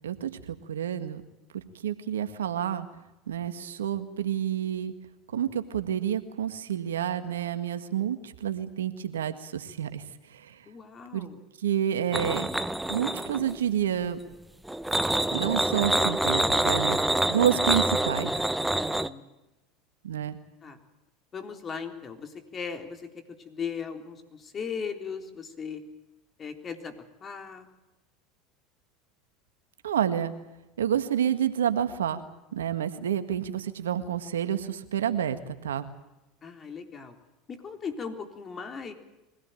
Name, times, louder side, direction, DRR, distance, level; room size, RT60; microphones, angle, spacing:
voice 1, 0.0-1.2 1.5-2.9 3.3-4.9 5.3-10.0 10.5-10.6 11.1-11.3 11.6-12.5 12.9-14.2 15.3-17.0 17.3-18.3 20.0-20.4 29.8-30.3 30.8-32.2 32.5-35.9, right 9 dB, 90° right, 10 dB, 1.7 m, -29 dB
voice 2, 10.7-11.4 18.8-19.2 20.6-20.8 21.3-25.8 26.4-27.7 36.4-37.2 37.5-38.9, left 6 dB, 30° left, 6 dB, 3.7 m, -38 dB
sound 1, 12.1-13.6 14.7-19.1, right 1 dB, 5° right, 1.0 m, -26 dB
23.5 x 17.0 x 9.2 m, 1.0 s
hypercardioid pair, 90°, 0 cm